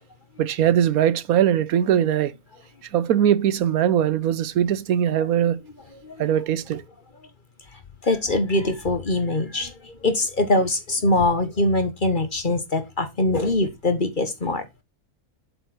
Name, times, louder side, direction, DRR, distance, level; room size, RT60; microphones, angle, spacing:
voice 1, 0.4-2.3 2.9-5.6 6.2-6.8, right 10 dB, 70° right, 1.1 m, -21 dB
voice 2, 8.0-14.7, left 2 dB, 35° left, 1.2 m, -23 dB
8.0 x 4.6 x 6.0 m
omnidirectional pair, 1.7 m